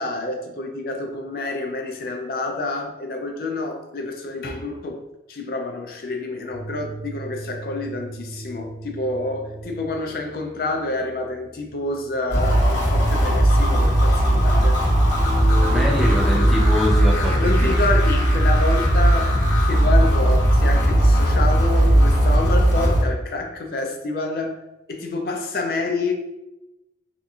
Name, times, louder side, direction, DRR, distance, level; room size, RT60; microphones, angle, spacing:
voice 1, 0.0-5.0 5.3-14.8 17.4-19.3 19.6-24.6 24.9-26.1, left 2 dB, 55° left, 3 dB, 0.4 m, -28 dB
sound 1, 6.5-16.6, left 1 dB, 50° right, 0.7 m, -36 dB
sound 2, 12.3-23.0, right 1 dB, 90° left, 1.2 m, -17 dB
voice 2, 15.6-17.7, left 1 dB, ahead, -5 dB, 0.5 m, -24 dB
2.8 x 2.5 x 2.3 m, 0.95 s
head